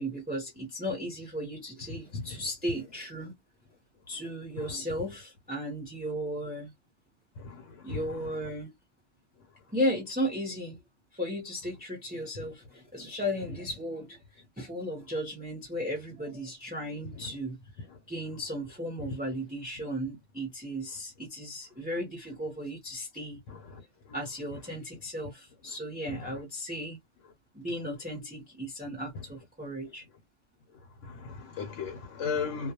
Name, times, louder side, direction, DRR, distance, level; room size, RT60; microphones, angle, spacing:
voice 1, 0.0-3.3 4.1-6.7 7.8-8.7 9.7-10.8 11.1-14.2 14.6-17.6 18.1-23.4 24.1-27.0 27.5-30.1, equal, 10° right, 0.6 m, -35 dB
voice 2, 1.9-2.4 4.6-4.7 7.4-8.0 17.9-18.0 23.5-23.8 26.1-26.2 30.7-32.7, left 5 dB, 70° left, 0.9 m, -36 dB
2.3 x 2.2 x 2.8 m
omnidirectional pair, 1.3 m